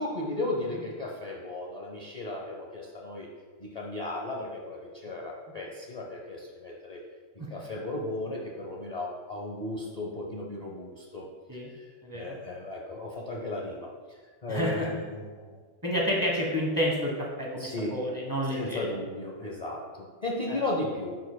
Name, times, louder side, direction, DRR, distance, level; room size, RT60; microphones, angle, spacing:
voice 1, 0.0-3.3 3.6-7.0 7.5-11.3 11.7-11.8 12.1-13.9 14.4-15.6 17.6-17.9 18.5-21.2, left 2 dB, 85° left, -3 dB, 0.3 m, -35 dB
voice 2, 12.0-12.3 14.5-14.9 15.8-18.9 20.5-20.6, equal, 15° right, -3 dB, 0.7 m, -29 dB
11.0 x 4.8 x 2.2 m, 1.5 s
omnidirectional pair, 1.9 m